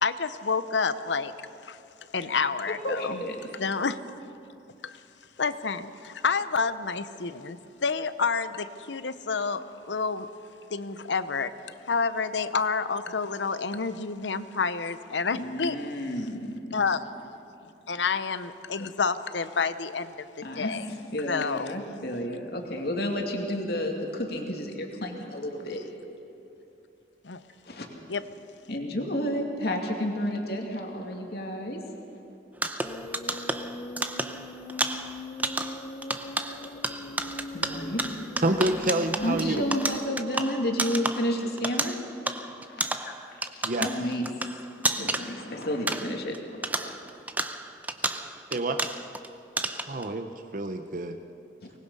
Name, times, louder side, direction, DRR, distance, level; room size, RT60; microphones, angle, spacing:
voice 1, 0.0-1.3 1.6-1.8 2.1-3.2 3.5-4.2 4.8-5.0 5.4-10.3 10.7-11.5 11.9-15.8 16.7-17.0 17.9-20.3 20.6-20.8 21.3-21.7 27.2-27.4 28.1-28.2, left 5 dB, 85° left, 0.8 m, -29 dB
voice 2, 2.8-3.4 15.3-16.7 20.4-25.8 27.7-27.9 28.7-31.8 37.5-38.3 39.2-42.0 42.4-44.3 44.5-44.6 45.0-46.9 51.6-51.7, equal, 60° left, 2.4 m, -31 dB
sound 1, 32.5-46.4 46.6-49.3 49.6-50.1, right 2 dB, 10° right, 0.7 m, -32 dB
sound 2, 32.8-40.1, left 2 dB, 40° left, 0.9 m, -40 dB
voice 3, 38.4-39.7 43.6-43.9 48.5-48.8 49.9-51.2, right 1 dB, 50° right, 0.8 m, -28 dB
24.5 x 20.0 x 5.5 m
head